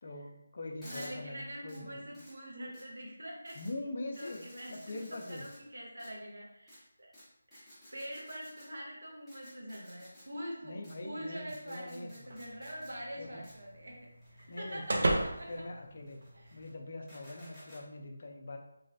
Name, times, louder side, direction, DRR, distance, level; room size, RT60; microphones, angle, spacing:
voice 1, 0.0-2.0 3.5-4.4 4.7-5.5 10.6-12.4 13.2-13.5 14.5-15.2 15.5-16.2 16.5-18.6, left 2 dB, 45° left, 2 dB, 0.5 m, -43 dB
sound 1, 0.8-1.1 1.7-1.8 2.1-2.3 2.7-2.8 3.5-3.7 4.1-5.6 6.0-6.1 6.7-6.8 7.1-7.2 7.5-8.7 9.3-10.2 10.8-10.9 11.5-12.9 13.4-13.5 14.2-15.6 16.1-16.7 17.1-17.8, equal, ahead, 1.1 m, -54 dB
voice 2, 0.8-3.6 4.2-7.1 7.5-14.0 14.3-15.6 16.3-16.6, equal, 80° right, -2 dB, 1.2 m, -44 dB
sound 2, 12.3-16.7, right 1 dB, 55° right, 0.6 m, -37 dB
3.1 x 3.0 x 2.7 m, 0.82 s
figure-of-eight pair, 165°, 0 cm